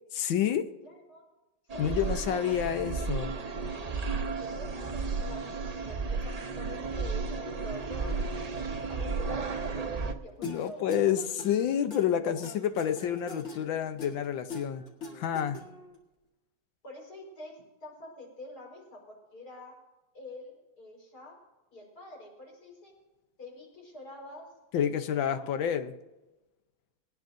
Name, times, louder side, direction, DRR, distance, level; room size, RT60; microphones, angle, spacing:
voice 1, 0.1-0.7 1.8-3.3 10.4-14.8 15.1-15.6 24.7-25.9, left 9 dB, 85° left, 10 dB, 1.6 m, -29 dB
voice 2, 0.8-1.2 1.7-2.5 3.2-3.6 4.4-8.3 8.7-11.2 12.2-12.4 16.8-19.7 20.1-21.4 21.7-22.9 23.4-24.5 24.8-25.4 25.7-25.8, left 1 dB, 55° left, -2 dB, 5.0 m, -47 dB
sound 1, 1.7-10.1, right 4 dB, 65° right, 0.4 m, -33 dB
sound 2, 10.4-16.0, left 3 dB, 40° left, 1.9 m, -43 dB
20.0 x 18.0 x 2.6 m, 1.1 s
omnidirectional pair, 2.0 m